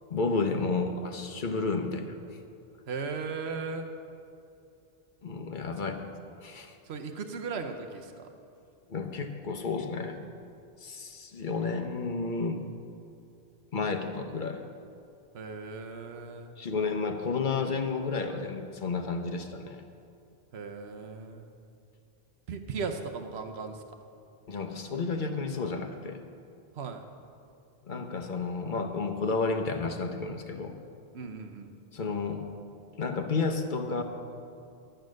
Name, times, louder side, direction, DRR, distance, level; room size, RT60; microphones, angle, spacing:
voice 1, 0.1-2.1 5.2-6.0 6.4-6.8 8.9-10.2 10.8-12.6 13.7-14.6 16.6-19.8 24.5-26.2 27.9-30.7 31.9-32.4 33.0-34.0, left 4 dB, 55° left, 5 dB, 1.0 m, -31 dB
voice 2, 2.9-3.9 5.8-5.9 6.8-8.3 15.3-16.5 20.5-21.5 22.5-23.8 26.7-27.0 31.1-31.7, right 4 dB, 85° right, 6 dB, 1.1 m, -37 dB
11.5 x 8.9 x 6.4 m, 2.6 s
omnidirectional pair, 1.0 m